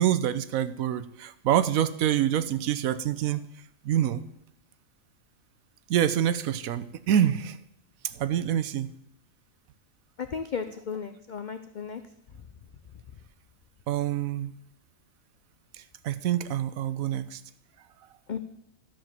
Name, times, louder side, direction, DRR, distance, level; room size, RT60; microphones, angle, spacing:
voice 1, 0.0-3.5 3.8-4.2 5.9-7.6 8.0-8.9 13.9-14.5 16.0-17.4, right 10 dB, 90° right, 14 dB, 1.1 m, -26 dB
voice 2, 10.2-12.0 18.3-18.4, left 6 dB, 55° left, 9 dB, 0.5 m, -34 dB
13.0 x 5.1 x 7.5 m, 0.77 s
omnidirectional pair, 1.4 m